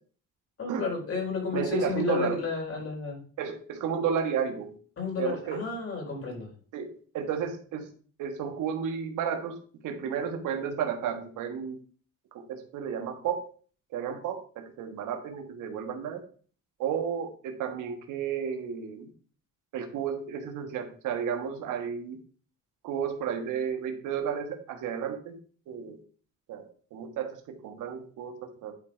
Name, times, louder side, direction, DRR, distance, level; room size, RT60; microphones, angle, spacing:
voice 1, 0.6-3.2 5.0-6.5, left 4 dB, 50° left, 0 dB, 4.5 m, -32 dB
voice 2, 1.5-2.4 3.4-4.7 5.2-5.6 6.7-7.9 8.2-9.6 9.8-11.7 12.5-13.4 13.9-16.2 16.8-19.1 19.7-22.2 22.8-25.3 25.7-26.0 26.5-28.7, right 7 dB, 85° right, 6 dB, 1.5 m, -32 dB
10.5 x 4.4 x 4.9 m, 0.44 s
cardioid pair, 90°, 30 cm